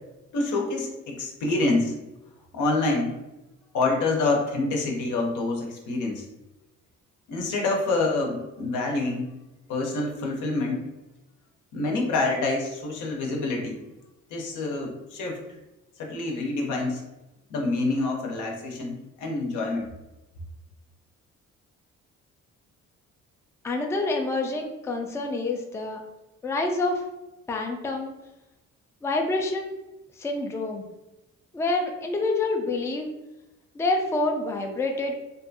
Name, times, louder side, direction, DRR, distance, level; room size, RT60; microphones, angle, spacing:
voice 1, 0.3-1.9 2.5-3.2 3.7-6.3 7.3-9.3 9.7-10.8 11.7-13.8 14.3-15.4 16.0-17.0 17.5-19.9, left 2 dB, 80° left, 0 dB, 0.7 m, -27 dB
voice 2, 23.6-26.0 26.4-27.0 27.5-28.1 29.0-29.7 30.2-30.8 31.5-33.1 33.7-35.1, left 2 dB, 10° left, 2 dB, 0.3 m, -27 dB
2.6 x 2.3 x 2.6 m, 0.99 s
cardioid pair, 90°, 30 cm